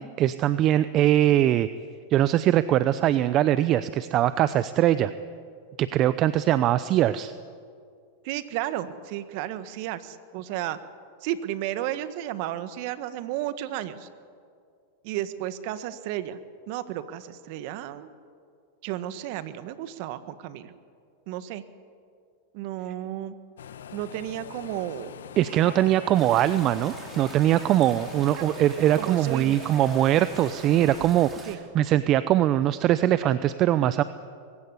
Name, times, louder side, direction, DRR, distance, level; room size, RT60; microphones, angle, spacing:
voice 1, 0.0-1.7 2.1-5.1 5.8-7.3 25.4-31.5 31.7-34.0, right 12 dB, 40° right, 14 dB, 0.7 m, -22 dB
voice 2, 8.2-10.8 11.2-14.1 15.0-16.4 16.7-18.1 18.8-20.7 21.3-21.6 22.5-23.3 23.9-25.1 28.4-28.5 29.0-29.6 31.5-31.6, right 13 dB, 55° right, 12 dB, 1.5 m, -33 dB
sound 1, 23.6-31.1, left 8 dB, 80° left, 1.2 m, -43 dB
sound 2, 26.1-31.6, right 3 dB, 20° right, 4.4 m, -43 dB
22.5 x 16.0 x 9.8 m, 2.2 s
hypercardioid pair, 110°, 0 cm